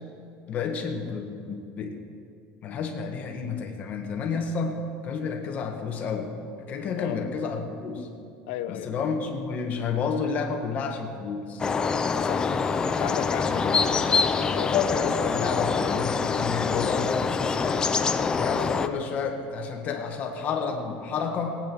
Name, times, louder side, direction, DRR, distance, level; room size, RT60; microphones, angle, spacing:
voice 1, 0.5-2.0 2.6-4.8 5.0-6.3 6.7-8.1 8.7-11.6 13.4-13.8 14.7-17.1 18.4-21.6, left 5 dB, 35° left, 2 dB, 1.7 m, -30 dB
voice 2, 8.5-9.1 12.1-12.5 12.8-14.9, left 12 dB, 75° left, 11 dB, 0.8 m, -35 dB
sound 1, 11.6-18.9, left 5 dB, 15° left, 0.5 m, -25 dB
18.0 x 9.1 x 6.2 m, 2.5 s
cardioid pair, 160°, 4 cm